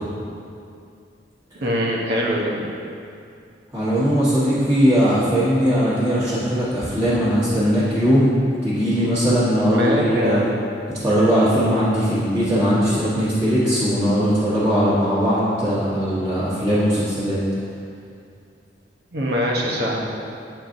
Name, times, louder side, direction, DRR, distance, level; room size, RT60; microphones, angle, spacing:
voice 1, 1.5-2.6 9.7-10.5 19.1-20.0, equal, 65° right, -2 dB, 0.9 m, -22 dB
voice 2, 3.7-8.3 8.6-10.5 11.0-17.4, equal, 15° right, -16 dB, 1.4 m, -19 dB
8.8 x 4.5 x 2.6 m, 2.4 s
head